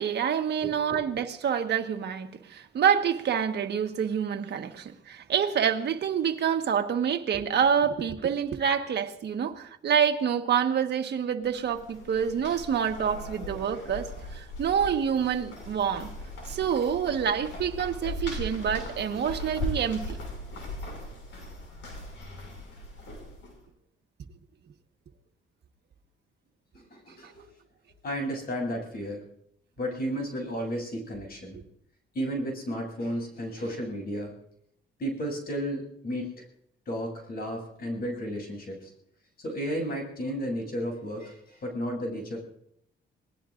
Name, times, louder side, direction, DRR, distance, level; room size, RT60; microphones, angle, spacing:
voice 1, 0.0-16.1 16.5-20.2 31.5-31.6, right 8 dB, 60° right, 1.5 m, -27 dB
voice 2, 0.6-1.0 26.7-27.5 28.0-29.3 29.8-31.6 32.1-34.3 35.0-36.3 36.9-38.9 39.4-42.4, equal, 50° left, 7.7 m, -33 dB
sound 1, 11.5-23.6, left 1 dB, 70° left, 6.3 m, -39 dB
27.0 x 19.0 x 2.6 m
cardioid pair, 90°, 20 cm